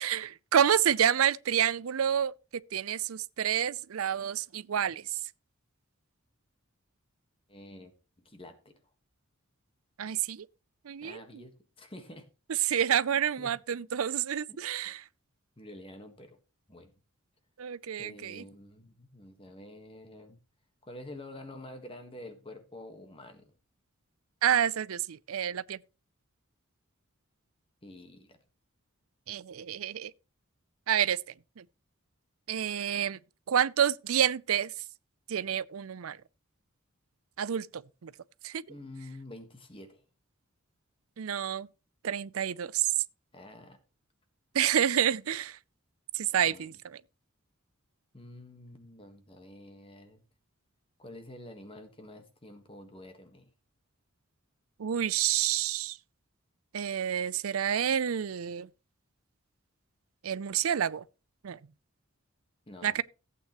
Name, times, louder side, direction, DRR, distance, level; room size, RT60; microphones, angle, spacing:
voice 1, 0.0-2.3 2.7-5.0 10.0-10.5 10.9-11.2 12.7-15.0 17.6-18.4 24.4-25.8 29.3-30.1 30.9-31.2 31.6-31.7 32.5-33.2 33.5-34.7 35.3-36.2 37.4-38.1 38.4-38.6 41.2-41.7 42.0-42.9 44.5-45.6 46.1-46.7 54.8-56.0 56.7-58.7 60.2-61.0 61.4-61.6 62.8-63.0, right 9 dB, 85° right, 0.5 m, -28 dB
voice 2, 7.5-7.9 8.2-8.7 11.0-12.3 13.0-13.5 14.5-14.9 15.6-16.4 16.7-16.9 18.0-20.4 20.8-23.5 27.8-28.4 38.7-40.0 43.3-43.8 46.5-46.7 48.1-50.2 51.0-53.5 62.7-63.0, left 1 dB, 25° left, 1.5 m, -48 dB
15.5 x 8.4 x 3.0 m
head